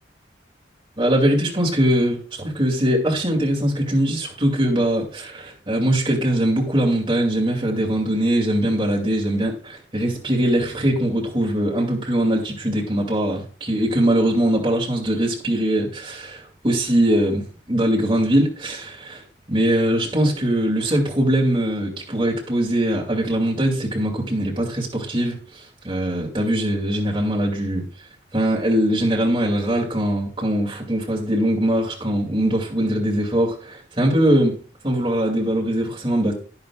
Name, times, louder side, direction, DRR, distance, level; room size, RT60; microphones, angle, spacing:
voice 1, 1.0-19.2 19.5-25.4 25.8-27.8 28.3-34.6 34.8-36.3, right 1 dB, 25° right, 2.4 m, -21 dB
11.0 x 10.5 x 2.4 m
head